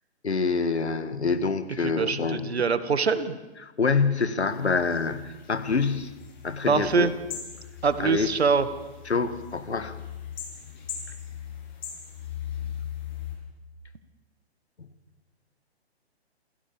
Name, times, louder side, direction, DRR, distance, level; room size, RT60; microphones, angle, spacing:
voice 1, 0.2-2.5 3.6-6.2 6.4-7.1 8.0-8.3 9.1-10.0 14.8-14.9, left 4 dB, 80° left, 13 dB, 1.9 m, -26 dB
voice 2, 1.8-3.4 6.7-7.1 7.8-8.7, right 5 dB, 75° right, 12 dB, 1.9 m, -24 dB
sound 1, 4.4-13.4, left 9 dB, 45° left, 7.6 m, -39 dB
27.5 x 17.0 x 7.1 m, 1.1 s
figure-of-eight pair, 135°, 33 cm